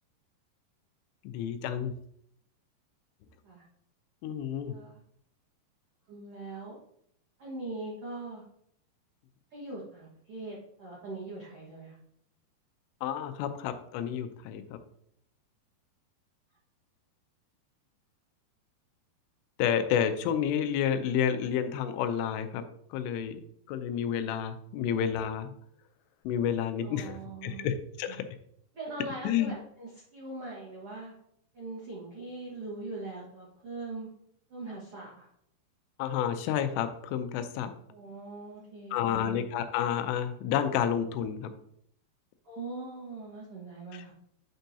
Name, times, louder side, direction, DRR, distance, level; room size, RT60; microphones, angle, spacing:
voice 1, 1.3-1.9 4.2-4.8 13.0-14.8 19.6-22.6 22.9-23.4 23.7-25.5 26.3-28.2 29.2-29.5 36.0-37.7 38.9-41.5, left 9 dB, 90° left, 9 dB, 2.8 m, -30 dB
voice 2, 4.6-5.0 6.1-6.8 7.4-8.4 9.5-12.0 26.8-27.7 28.1-28.2 28.7-31.1 31.5-34.1 34.5-35.3 37.9-39.3 42.4-44.1, right 2 dB, 75° right, -5 dB, 1.3 m, -41 dB
9.0 x 4.5 x 2.7 m, 0.70 s
omnidirectional pair, 4.8 m